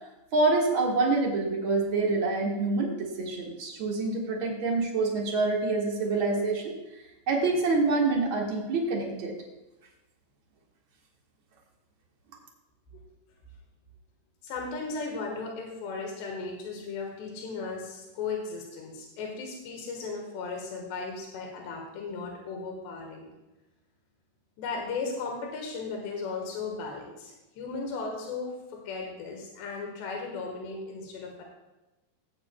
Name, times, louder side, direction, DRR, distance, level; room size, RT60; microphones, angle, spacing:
voice 1, 0.3-6.8 7.3-9.3, right 3 dB, 60° right, -2 dB, 1.3 m, -26 dB
voice 2, 14.4-23.3 24.6-31.4, left 4 dB, 85° left, 0 dB, 3.6 m, -36 dB
17.0 x 8.6 x 2.3 m, 1.0 s
omnidirectional pair, 4.8 m